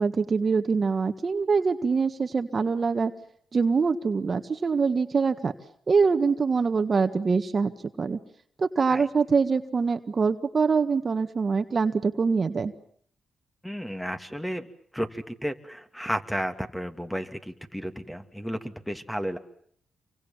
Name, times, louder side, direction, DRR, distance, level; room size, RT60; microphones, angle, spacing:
voice 1, 0.0-3.1 3.5-5.5 5.9-7.7 8.0-8.2 8.6-12.7, right 5 dB, 45° right, 9 dB, 1.7 m, -24 dB
voice 2, 13.6-14.6 14.9-19.4, equal, 5° left, 7 dB, 2.7 m, -33 dB
28.0 x 24.5 x 7.4 m, 0.62 s
cardioid pair, 70°, 0 cm